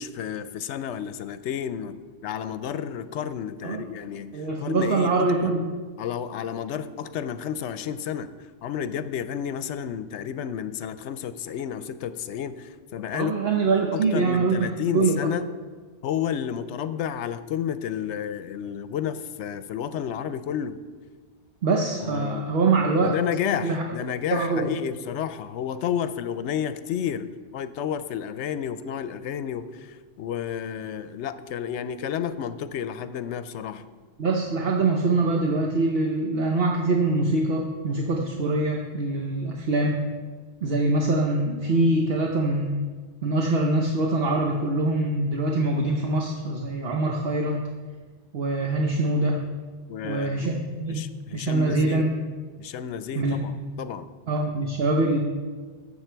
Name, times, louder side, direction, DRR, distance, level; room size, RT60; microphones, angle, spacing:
voice 1, 0.0-2.0 2.2-5.5 6.0-13.3 13.9-15.5 16.0-20.8 22.0-22.6 23.0-33.9 49.9-50.5 50.9-52.1 52.6-54.1, left 9 dB, 80° left, 13 dB, 0.9 m, -31 dB
voice 2, 4.3-5.7 13.1-14.7 14.9-15.1 21.6-23.2 23.6-23.8 24.3-24.7 34.2-40.0 40.6-42.8 43.2-47.6 48.3-49.4 50.0-52.1 53.1-53.4 54.3-55.2, right 2 dB, 60° right, 1 dB, 1.1 m, -24 dB
12.5 x 7.6 x 4.5 m, 1.5 s
omnidirectional pair, 1.2 m